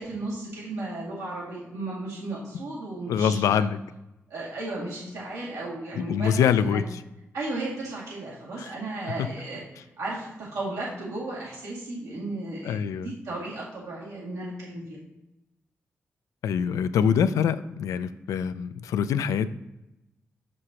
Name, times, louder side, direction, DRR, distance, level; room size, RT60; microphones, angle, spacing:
voice 1, 0.0-3.6 4.3-6.8 7.3-9.6 10.0-15.0, right 2 dB, 90° right, -6 dB, 2.2 m, -35 dB
voice 2, 3.1-3.8 6.0-7.0 8.6-8.7 12.6-13.1 16.4-19.5, left 7 dB, 85° left, 13 dB, 0.4 m, -24 dB
6.6 x 6.2 x 2.9 m, 0.93 s
supercardioid pair, 45°, 5 cm